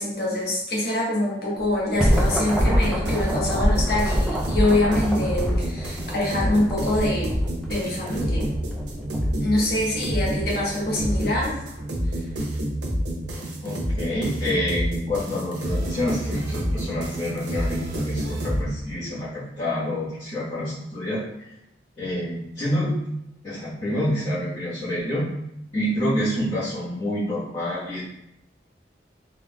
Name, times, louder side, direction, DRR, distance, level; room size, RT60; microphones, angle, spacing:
voice 1, 0.0-7.3 7.7-8.4 9.4-11.5, left 1 dB, 60° left, -4 dB, 1.2 m, -24 dB
sound 1, 1.6-11.0, equal, ahead, 0.4 m, -27 dB
sound 2, 2.0-18.6, equal, 80° right, 0.6 m, -28 dB
voice 2, 13.6-21.2 22.0-23.0 23.4-25.3 25.7-28.0, left 1 dB, 35° left, -15 dB, 1.3 m, -27 dB
3.8 x 3.5 x 2.3 m, 0.80 s
head